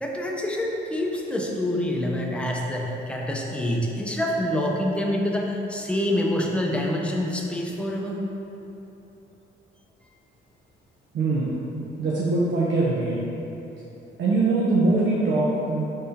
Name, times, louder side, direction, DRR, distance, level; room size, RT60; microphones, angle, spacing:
voice 1, 0.0-8.2, left 1 dB, 5° left, -1 dB, 0.5 m, -26 dB
voice 2, 11.1-11.5 12.0-13.2 14.2-15.8, right 3 dB, 70° right, -6 dB, 0.7 m, -22 dB
5.4 x 3.5 x 2.7 m, 2.9 s
cardioid pair, 90°, 20 cm